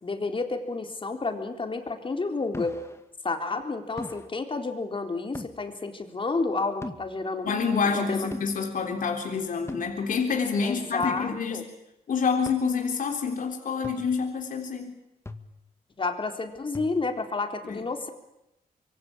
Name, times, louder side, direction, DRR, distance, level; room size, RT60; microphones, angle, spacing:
voice 1, 0.0-2.8 3.2-7.5 7.9-8.3 10.6-11.6 16.0-18.1, left 3 dB, 35° left, 5 dB, 4.0 m, -30 dB
sound 1, 2.5-3.0 4.0-4.3 5.3-5.6 6.8-7.1 8.3-8.5 9.7-9.9 11.0-11.3 12.5-12.6 13.8-14.2 15.3-15.7 16.7-17.1, left 2 dB, 15° left, 2.1 m, -39 dB
voice 2, 7.4-11.6 12.1-14.9 17.6-17.8, left 5 dB, 60° left, 3 dB, 3.7 m, -27 dB
26.0 x 23.5 x 8.9 m, 0.88 s
cardioid pair, 90°, 16 cm